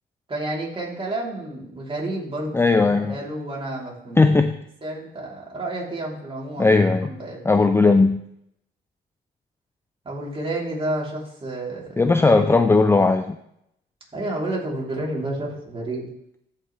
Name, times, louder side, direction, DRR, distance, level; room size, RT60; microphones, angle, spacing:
voice 1, 0.3-4.4 4.8-7.4 10.0-12.5 14.1-16.1, right 1 dB, 25° right, -3 dB, 3.4 m, -30 dB
voice 2, 2.5-3.2 4.2-4.6 6.6-7.1 7.4-8.3 12.0-13.4, left 3 dB, 10° left, 8 dB, 0.4 m, -17 dB
14.0 x 5.7 x 3.3 m, 0.75 s
cardioid pair, 90°, 20 cm